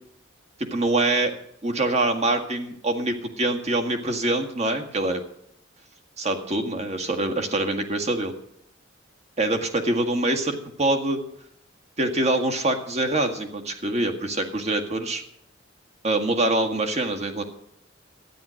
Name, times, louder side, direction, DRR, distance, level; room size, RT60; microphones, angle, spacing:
voice 1, 0.7-1.3 1.6-5.2 6.2-8.3 9.4-11.2 12.0-15.2 16.0-17.4, right 2 dB, 35° right, 6 dB, 1.7 m, -24 dB
13.0 x 9.8 x 6.4 m, 0.72 s
head